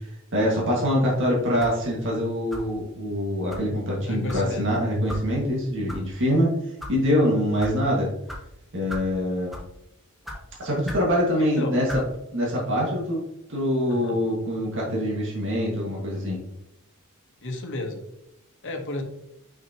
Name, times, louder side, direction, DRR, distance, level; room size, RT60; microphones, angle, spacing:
voice 1, 0.3-6.5 6.9-8.1 8.7-9.5 10.6-11.9 12.3-13.2 13.5-16.4, equal, 60° right, -3 dB, 2.0 m, -24 dB
sound 1, 1.6-1.8 2.5-2.8 3.5-3.7 4.3-4.5 5.1-5.2 5.9-6.0 6.6-6.9 7.6-7.7 8.3-8.4 8.9-9.1 9.5-9.7 10.2-10.4 10.8-11.1 11.9-12.1, left 1 dB, ahead, 1.4 m, -36 dB
voice 2, 4.0-4.6 11.4-11.8 13.9-14.2 17.4-18.0 18.6-19.0, left 2 dB, 60° left, 3 dB, 1.1 m, -32 dB
6.2 x 5.9 x 2.9 m, 0.84 s
head